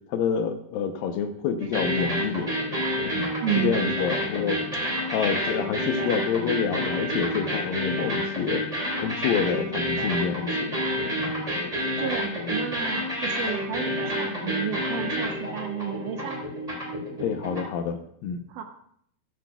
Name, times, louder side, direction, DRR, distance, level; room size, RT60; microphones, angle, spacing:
voice 1, 0.1-2.5 3.1-4.8 5.1-8.6 9.0-10.7 11.2-11.4 17.2-18.4, left 7 dB, 75° left, 7 dB, 2.4 m, -28 dB
sound 1, 1.6-17.8, equal, 10° right, 3.6 m, -29 dB
voice 2, 3.4-3.9 12.0-16.4 18.5-18.6, right 9 dB, 75° right, 4 dB, 2.0 m, -31 dB
16.0 x 14.5 x 2.3 m, 0.67 s
omnidirectional pair, 4.3 m